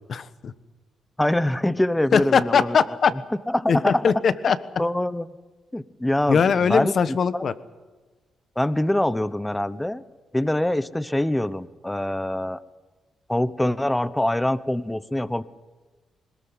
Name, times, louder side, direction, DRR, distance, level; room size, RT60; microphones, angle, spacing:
voice 1, 0.1-0.5 2.1-3.1 3.7-4.6 6.3-7.5, left 6 dB, 50° left, 13 dB, 1.2 m, -20 dB
voice 2, 1.2-2.8 3.5-4.0 4.8-5.3 5.7-6.9 7.3-7.4 8.6-10.0 10.3-12.6 13.3-15.4, left 1 dB, 10° left, 15 dB, 0.9 m, -24 dB
21.5 x 20.0 x 9.4 m, 1.3 s
cardioid pair, 100°, 0 cm